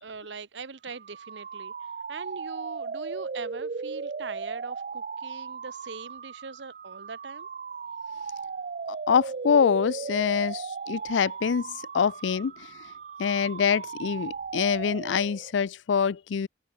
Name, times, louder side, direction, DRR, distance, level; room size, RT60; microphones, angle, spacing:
voice 1, 0.0-1.7 2.1-7.5, right 4 dB, 80° right, 1.0 m, -41 dB
sound 1, 0.9-15.6, right 5 dB, 45° right, 0.4 m, -37 dB
voice 2, 9.1-12.7 13.2-16.5, left 6 dB, 90° left, 0.4 m, -25 dB
head